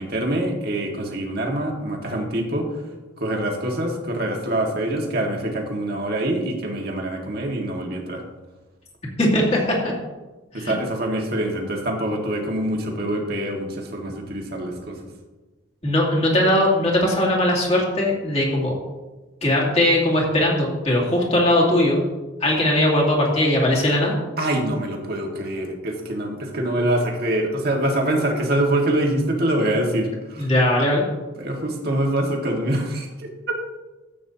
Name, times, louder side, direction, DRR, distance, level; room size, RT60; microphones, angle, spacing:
voice 1, 0.0-2.7 3.2-8.2 10.5-14.9 24.4-30.5 31.4-33.3, right 1 dB, 50° right, 1 dB, 1.7 m, -25 dB
voice 2, 9.2-9.6 10.5-10.7 15.8-18.7 19.4-22.0 22.4-24.1 30.4-31.0, left 1 dB, 30° left, -3 dB, 2.5 m, -19 dB
13.5 x 8.6 x 2.8 m, 1.2 s
head